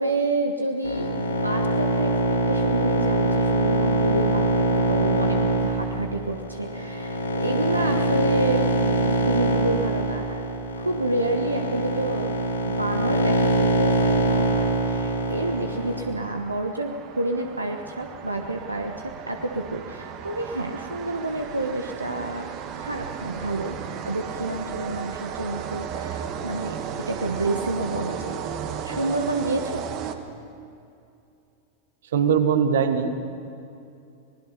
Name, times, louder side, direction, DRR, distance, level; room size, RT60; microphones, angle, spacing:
voice 1, 0.0-12.3 12.6-22.5 22.8-23.8 24.0-26.8 27.1-28.4 28.8-29.8, right 2 dB, 80° right, 4 dB, 1.2 m, -29 dB
sound 1, 0.8-16.0, right 1 dB, 80° left, 3.9 m, -23 dB
sound 2, 13.8-30.6, right 8 dB, 40° right, 1.5 m, -35 dB
voice 2, 32.1-33.2, right 7 dB, 60° right, 8 dB, 1.6 m, -21 dB
26.0 x 19.5 x 5.7 m, 2.6 s
figure-of-eight pair, 90°, 0 cm